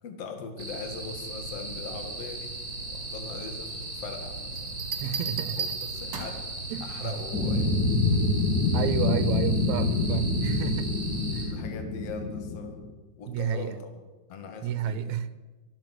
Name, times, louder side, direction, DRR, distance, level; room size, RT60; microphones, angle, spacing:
voice 1, 0.0-2.6 2.9-5.2 5.5-7.7 11.5-12.8 13.2-14.0 14.3-15.2, left 5 dB, 60° left, 2.7 m, -41 dB
sound 1, 0.6-11.5, right 2 dB, 35° right, 6.4 m, -37 dB
Bell, 4.6-6.5 8.1-8.5, right 6 dB, 55° right, 3.1 m, -35 dB
voice 2, 5.0-5.7 6.7-7.2 8.7-10.9 11.3-11.6 13.3-13.7 14.6-15.3, right 9 dB, 85° right, 2.0 m, -31 dB
sound 2, 7.3-12.9, left 3 dB, 40° left, 2.0 m, -26 dB
24.0 x 8.6 x 6.4 m
omnidirectional pair, 3.3 m